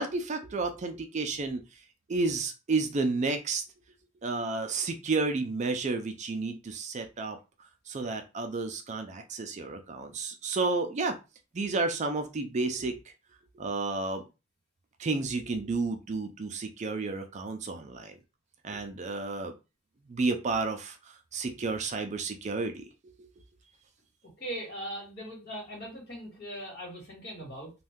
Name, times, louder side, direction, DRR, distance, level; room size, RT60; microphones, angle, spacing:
voice 1, 0.0-1.6 2.1-3.6 4.2-7.4 7.9-11.2 11.5-12.9 13.6-14.2 15.0-18.1 18.6-19.6 20.1-22.8 23.2-23.3, right 3 dB, 35° right, 6 dB, 0.4 m, -31 dB
voice 2, 24.4-27.7, right 1 dB, 55° left, -2 dB, 1.6 m, -40 dB
2.6 x 2.3 x 3.5 m, 0.28 s
head